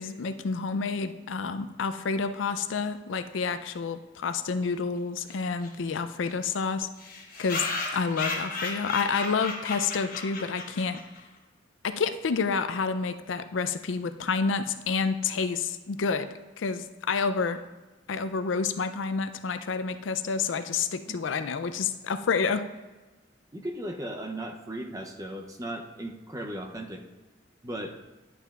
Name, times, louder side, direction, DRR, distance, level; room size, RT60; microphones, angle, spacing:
voice 1, 0.0-6.9 7.4-7.7 7.9-11.0 11.8-16.3 16.6-17.6 18.1-22.6, left 5 dB, 75° left, 10 dB, 0.4 m, -29 dB
sound 1, 5.3-5.4 5.6-5.7 6.0-6.1 6.3-6.4 7.0-11.2, left 3 dB, 45° left, 1.2 m, -34 dB
voice 2, 23.5-27.0 27.6-28.0, right 1 dB, 20° right, 3 dB, 0.6 m, -36 dB
11.0 x 7.9 x 2.4 m, 1.2 s
head